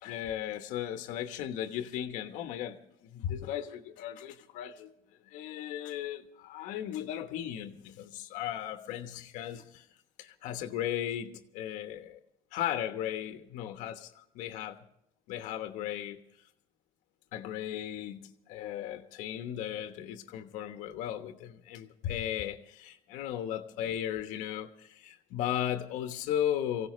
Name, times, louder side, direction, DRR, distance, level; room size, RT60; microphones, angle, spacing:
voice 1, 0.0-2.8 3.1-4.9 5.3-9.8 10.2-12.2 12.5-14.8 15.3-16.2 17.3-26.9, left 11 dB, 75° left, 1.2 m, -36 dB
23.5 x 16.5 x 3.2 m
cardioid pair, 165°, 13 cm